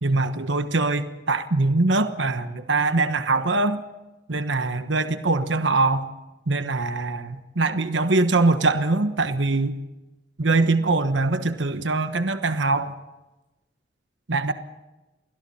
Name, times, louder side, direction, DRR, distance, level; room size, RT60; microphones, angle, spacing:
voice 1, 0.0-3.8 4.3-6.1 6.5-9.8 10.4-12.9 14.3-14.5, right 3 dB, 75° right, 9 dB, 1.2 m, -22 dB
29.0 x 21.5 x 4.3 m, 1.1 s
head